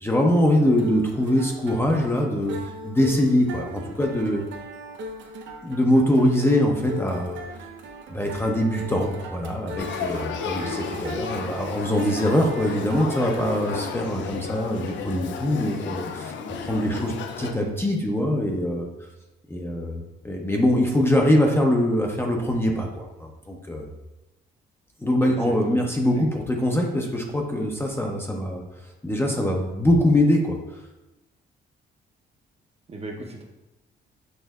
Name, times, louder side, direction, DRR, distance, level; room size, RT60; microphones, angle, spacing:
voice 1, 0.0-4.4 5.6-7.4 8.1-16.3 16.6-18.9 19.5-23.9 25.0-28.6 29.0-30.6, left 1 dB, 10° left, 1 dB, 0.6 m, -23 dB
sound 1, 0.6-13.8, right 1 dB, 70° right, 0.6 m, -39 dB
Male speech man speaking / Child speech kid speaking / Conversation, 9.8-17.5, left 6 dB, 70° left, 0.4 m, -33 dB
voice 2, 25.2-25.8 26.1-26.3 32.9-33.4, right 2 dB, 30° right, 1 dB, 0.7 m, -37 dB
6.4 x 2.6 x 2.3 m, 1.0 s
cardioid pair, 90°, 20 cm